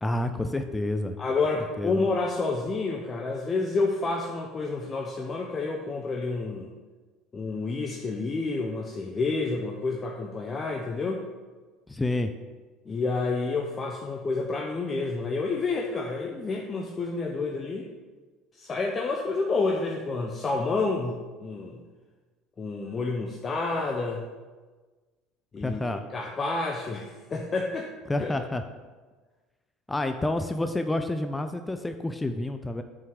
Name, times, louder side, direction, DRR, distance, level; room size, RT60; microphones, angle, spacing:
voice 1, 0.0-1.1 1.8-2.1 11.9-12.3 25.6-26.0 28.1-28.6 29.9-32.8, left 1 dB, 15° left, 7 dB, 0.5 m, -29 dB
voice 2, 1.2-6.7 7.3-11.2 12.9-17.9 18.5-21.8 22.6-24.2 25.5-27.9 28.2-28.3, left 3 dB, 30° left, 0 dB, 0.8 m, -29 dB
5.8 x 4.6 x 6.4 m, 1.3 s
hypercardioid pair, 70°, 0 cm